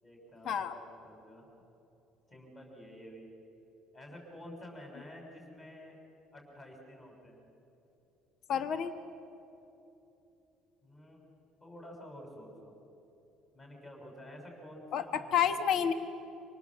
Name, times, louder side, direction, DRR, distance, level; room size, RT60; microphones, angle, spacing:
voice 1, 0.0-1.5 2.3-3.3 3.9-6.0 6.3-7.5 10.8-11.2 11.6-12.7 13.5-15.5, left 1 dB, 20° left, 1 dB, 6.1 m, -50 dB
voice 2, 8.5-8.9 14.9-15.9, left 8 dB, 50° left, 9 dB, 1.2 m, -29 dB
28.5 x 26.0 x 7.3 m, 2.9 s
cardioid pair, 155°, 0 cm